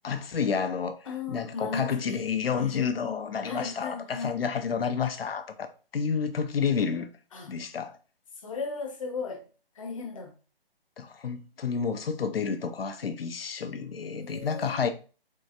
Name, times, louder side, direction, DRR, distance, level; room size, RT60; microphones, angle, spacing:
voice 1, 0.0-1.0 1.3-5.7 5.9-7.1 7.5-8.0 11.0-14.9, left 6 dB, 75° left, 0.7 m, -30 dB
voice 2, 1.1-2.2 2.6-2.7 3.4-4.3 7.3-7.5 8.4-9.4 9.8-10.3 14.1-14.9, left 4 dB, 35° left, 0.8 m, -36 dB
3.8 x 3.4 x 2.7 m
hypercardioid pair, 155°, 30 cm